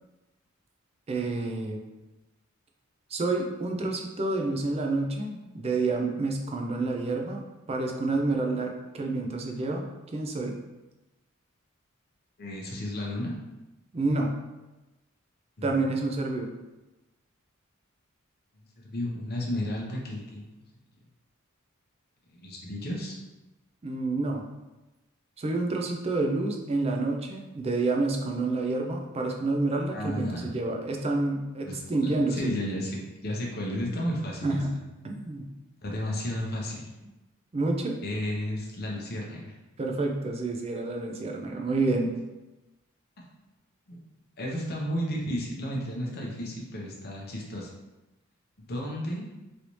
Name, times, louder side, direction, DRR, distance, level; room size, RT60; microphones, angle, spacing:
voice 1, 1.1-1.8 3.1-9.9 10.1-10.5 13.9-14.3 15.6-16.5 23.8-24.4 25.4-32.5 34.4-34.7 35.0-35.5 37.5-38.0 39.8-42.1, right 2 dB, 30° right, 2 dB, 0.4 m, -28 dB
voice 2, 12.4-13.3 15.6-15.9 18.8-20.5 22.3-23.2 29.9-30.5 31.7-34.6 35.8-36.9 38.0-39.5 43.9-44.0 44.4-47.7 48.6-49.2, left 1 dB, 50° left, -2 dB, 0.7 m, -33 dB
3.2 x 2.7 x 3.0 m, 1.0 s
head